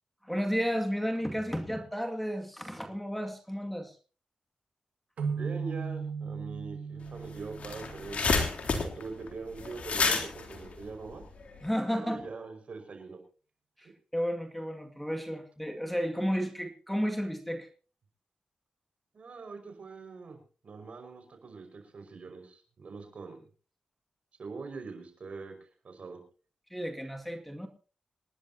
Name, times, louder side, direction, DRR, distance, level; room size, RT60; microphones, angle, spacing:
voice 1, 0.2-4.0 11.6-12.3 13.8-17.7 26.7-27.7, equal, 5° left, 5 dB, 2.2 m, -32 dB
sound 1, 5.2-8.7, right 5 dB, 85° right, 2.1 m, -37 dB
voice 2, 5.3-8.5 8.8-11.2 11.9-13.2 19.1-20.4 20.6-23.4 24.4-25.5 25.8-26.2, right 4 dB, 65° right, 6 dB, 5.4 m, -43 dB
sound 2, 7.1-7.2 7.4-11.7, left 4 dB, 65° left, 3.4 m, -30 dB
27.0 x 11.0 x 2.8 m, 0.37 s
cardioid pair, 50°, 2 cm